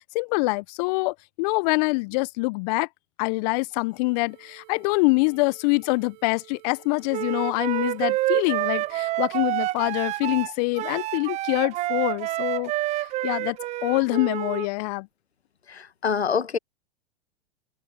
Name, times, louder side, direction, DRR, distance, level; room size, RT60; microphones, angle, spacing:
voice 1, 0.0-2.9 3.2-15.1, left 28 dB, 40° left, 0.7 m, -25 dB
sound 1, 3.6-9.8, right 25 dB, 50° right, 6.0 m, -53 dB
Wind instrument woodwind instrument, 7.1-14.7, right 17 dB, 20° right, 0.4 m, -28 dB
voice 2, 15.7-16.6, left 6 dB, 85° left, 1.3 m, -26 dB
hypercardioid pair, 110°, 31 cm